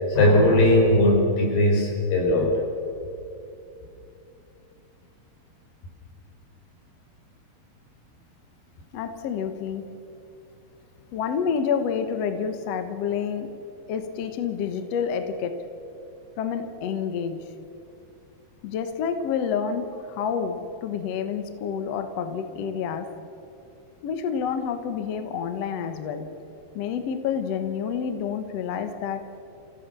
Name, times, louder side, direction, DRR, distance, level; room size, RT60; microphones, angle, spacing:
voice 1, 0.1-2.5, left 1 dB, 90° left, 0 dB, 6.7 m, -19 dB
voice 2, 8.9-9.9 11.1-13.5 13.9-15.6 16.4-17.4 18.6-23.1 24.0-26.3 26.7-29.3, left 7 dB, 65° left, 8 dB, 1.7 m, -28 dB
29.0 x 16.5 x 6.9 m, 2.7 s
omnidirectional pair, 4.4 m